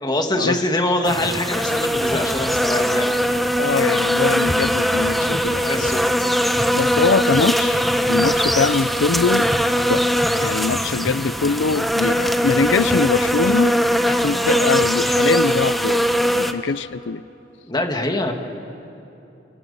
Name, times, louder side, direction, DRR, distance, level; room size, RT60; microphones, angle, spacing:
voice 1, 0.0-3.1 5.5-6.1 17.7-18.3, left 1 dB, 25° left, 4 dB, 1.9 m, -23 dB
sound 1, 1.1-16.5, equal, ahead, 0.9 m, -20 dB
voice 2, 3.6-5.9 6.7-9.5 9.9-10.1 10.4-13.8 14.0-17.2, left 4 dB, 85° left, 16 dB, 0.6 m, -22 dB
29.5 x 28.0 x 5.5 m, 2.8 s
head